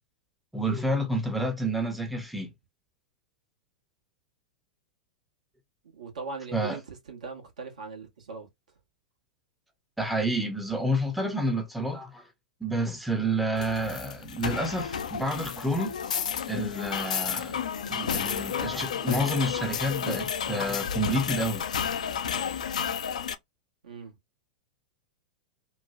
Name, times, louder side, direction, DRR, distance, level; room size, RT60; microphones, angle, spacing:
voice 1, 0.5-2.5 6.5-6.8 10.0-12.3 12.6-16.0 16.5-21.6, right 1 dB, ahead, 0.6 m, -29 dB
voice 2, 5.9-8.5 23.8-24.1, right 4 dB, 70° right, 1.2 m, -40 dB
Karelian Pies Fall From The Sky, 13.6-23.3, left 7 dB, 70° left, 0.4 m, -31 dB
3.0 x 2.1 x 2.3 m
figure-of-eight pair, 95°, 4 cm